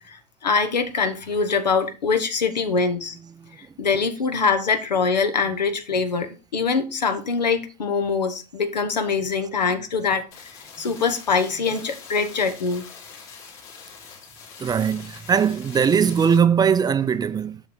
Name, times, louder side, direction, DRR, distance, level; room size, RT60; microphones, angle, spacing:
voice 1, 0.1-3.1 3.8-10.2 10.8-12.8, left 5 dB, 80° left, 1.2 m, -23 dB
voice 2, 2.8-3.6 5.4-5.5 9.4-9.8 10.8-11.0 11.4-11.8 14.6-17.6, right 7 dB, 20° right, 0.5 m, -22 dB
sound 1, 10.3-16.4, left 6 dB, 55° left, 3.3 m, -43 dB
7.0 x 6.4 x 3.8 m
hypercardioid pair, 85°, 21 cm